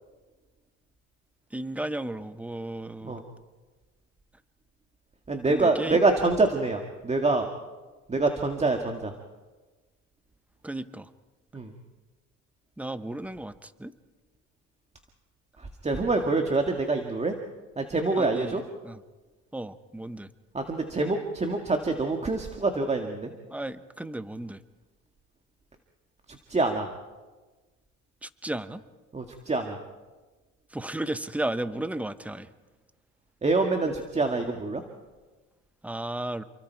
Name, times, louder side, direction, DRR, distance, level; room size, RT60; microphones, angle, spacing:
voice 1, 1.5-3.2 5.5-6.0 10.6-11.1 12.8-13.9 18.2-19.0 19.5-20.3 23.5-24.6 28.2-28.8 30.7-32.5 35.8-36.4, right 1 dB, 5° right, 12 dB, 1.1 m, -34 dB
voice 2, 5.3-7.5 8.1-9.1 11.5-11.7 15.6-17.3 17.8-18.6 20.5-23.3 26.5-26.9 29.1-29.8 33.4-34.8, right 3 dB, 20° right, 4 dB, 1.9 m, -26 dB
29.0 x 23.0 x 4.7 m, 1.3 s
cardioid pair, 100°, 30 cm